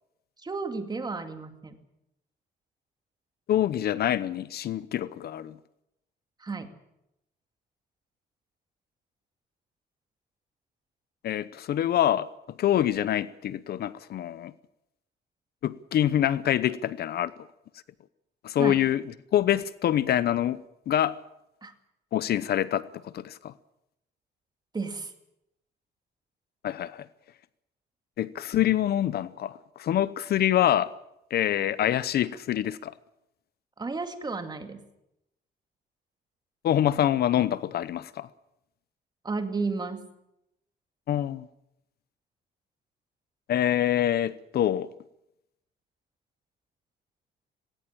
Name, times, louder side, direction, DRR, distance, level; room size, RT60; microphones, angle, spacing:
voice 1, 0.4-1.8 6.4-6.7 18.6-18.9 21.6-21.7 24.7-25.1 33.8-34.8 39.2-40.0, right 4 dB, 25° right, 2.3 m, -32 dB
voice 2, 3.5-5.6 11.2-12.3 12.6-14.5 15.6-17.3 18.4-19.0 19.3-20.6 20.9-21.2 22.1-23.5 26.6-27.1 28.2-30.9 31.3-32.9 36.6-38.3 41.1-41.5 43.5-44.9, left 11 dB, 60° left, 0.8 m, -25 dB
19.0 x 18.0 x 8.7 m
cardioid pair, 125°, 18 cm